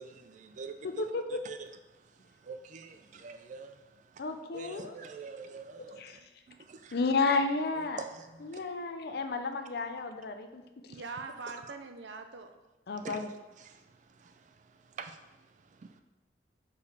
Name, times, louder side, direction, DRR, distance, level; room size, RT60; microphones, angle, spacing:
voice 1, 0.0-4.2 4.5-6.2 6.5-7.0 7.8-8.6 10.9-11.0 11.5-11.6 12.9-13.3 13.6-16.0, right 4 dB, 45° right, 0.4 m, -47 dB
voice 2, 0.8-1.4 4.2-4.9 6.0-6.2 6.9-8.0 8.4-11.0 12.9-13.3, left 3 dB, 60° left, 0.5 m, -32 dB
voice 3, 10.9-12.5, right 4 dB, 80° right, 0.6 m, -42 dB
5.2 x 4.5 x 4.8 m
head